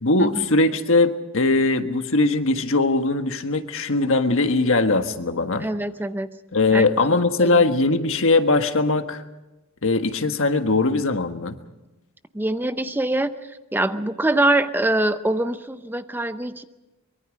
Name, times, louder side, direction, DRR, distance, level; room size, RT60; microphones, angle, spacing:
voice 1, 0.0-5.6 6.5-9.2 9.8-11.6, left 3 dB, 60° left, 7 dB, 1.5 m, -20 dB
voice 2, 5.6-6.3 6.7-6.9 7.4-7.6 12.3-16.6, right 1 dB, 10° right, 10 dB, 0.6 m, -24 dB
24.5 x 23.0 x 5.2 m, 1.1 s
head